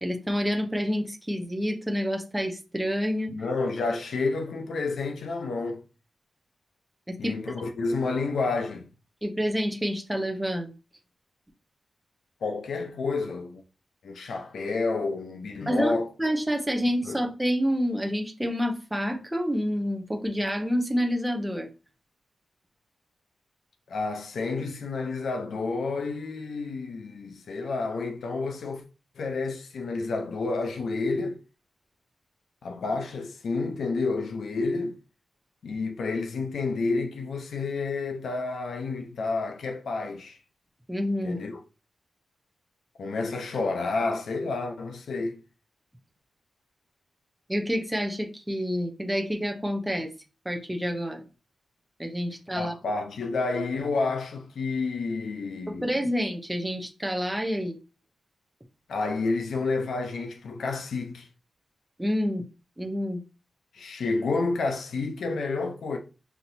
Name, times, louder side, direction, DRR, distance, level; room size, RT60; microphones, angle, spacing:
voice 1, 0.0-3.3 7.1-7.5 9.2-10.7 15.7-21.7 40.9-41.4 47.5-50.1 50.4-51.2 52.0-52.8 55.7-57.8 62.0-62.4 62.8-63.2, equal, 5° right, 0.6 m, -28 dB
voice 2, 3.3-5.8 7.2-8.9 12.4-13.6 14.0-16.1 17.1-17.2 23.9-28.8 29.2-31.4 32.6-35.0 35.6-40.4 41.2-41.6 43.0-45.4 52.5-55.9 58.9-61.3 63.7-66.0, left 3 dB, 85° left, 0.6 m, -30 dB
5.8 x 2.8 x 2.7 m
wide cardioid pair, 160°, 0 cm